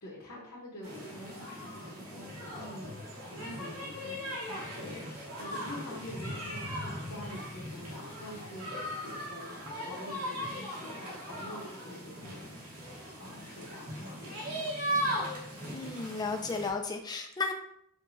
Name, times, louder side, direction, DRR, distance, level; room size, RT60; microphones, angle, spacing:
voice 1, 0.0-12.9 13.2-15.3, left 1 dB, 65° left, -7 dB, 0.9 m, -46 dB
sound 1, 0.8-16.7, equal, 80° right, 1.1 m, -38 dB
voice 2, 15.7-17.5, left 4 dB, 20° left, 5 dB, 0.3 m, -34 dB
4.6 x 2.2 x 2.6 m, 0.70 s
head